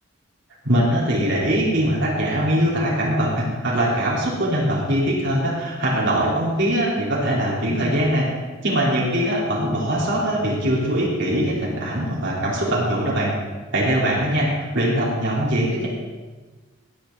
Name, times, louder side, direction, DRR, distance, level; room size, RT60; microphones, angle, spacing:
voice 1, 0.6-8.3 8.6-13.3 13.7-15.9, equal, 60° right, -5 dB, 3.6 m, -22 dB
17.0 x 10.0 x 4.0 m, 1.3 s
head